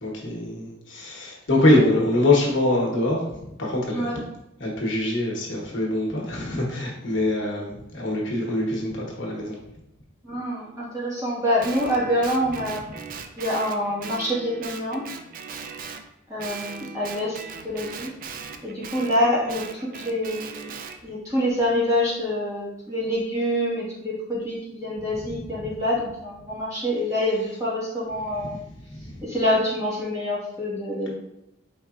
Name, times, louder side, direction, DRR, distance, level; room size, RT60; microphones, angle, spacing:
voice 1, 0.0-4.1 4.6-9.6 29.0-29.2, left 1 dB, 65° left, -2 dB, 1.1 m, -24 dB
voice 2, 10.2-12.8 13.4-15.0 16.3-17.4 17.6-18.1 18.6-20.7 21.0-28.5 29.2-31.1, left 1 dB, 15° right, -7 dB, 1.4 m, -26 dB
Guitar, 11.6-16.1 16.4-21.0, right 5 dB, 45° right, 0.3 m, -39 dB
4.6 x 3.8 x 2.4 m, 0.85 s
head